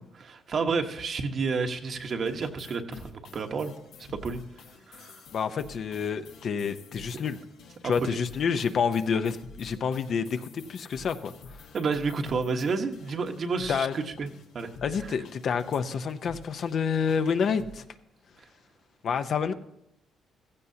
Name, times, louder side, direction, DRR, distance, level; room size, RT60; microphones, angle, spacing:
voice 1, 0.0-3.7 4.1-4.4 4.9-5.2 7.1-7.2 7.8-8.2 11.7-14.3 14.5-14.7 15.0-15.1, right 4 dB, 55° right, 4 dB, 1.2 m, -30 dB
sound 1, 1.8-17.9, left 4 dB, 85° left, 1.1 m, -50 dB
voice 2, 5.3-7.4 7.8-11.3 13.7-13.9 14.8-17.8 19.0-19.5, left 6 dB, 60° left, 9 dB, 0.7 m, -28 dB
15.5 x 15.0 x 2.8 m, 0.81 s
cardioid pair, 90°, 0 cm